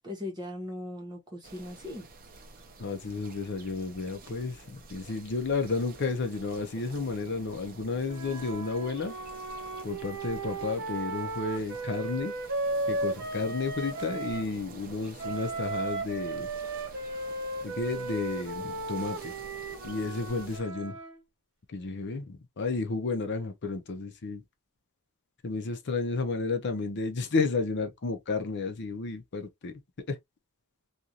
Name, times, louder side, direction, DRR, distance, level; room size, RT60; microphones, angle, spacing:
voice 1, 0.0-2.1, left 1 dB, 20° right, 1.0 m, -39 dB
sound 1, 1.4-20.6, right 3 dB, 40° right, 0.7 m, -49 dB
voice 2, 2.8-9.1 9.8-12.3 12.9-16.5 17.6-19.3 19.8-21.0 21.7-24.4 25.4-29.7 30.1-30.2, left 3 dB, 50° left, 0.6 m, -32 dB
Wind instrument woodwind instrument, 8.1-14.5 15.2-21.2, right 2 dB, 55° right, 1.0 m, -35 dB
2.6 x 2.4 x 2.8 m
head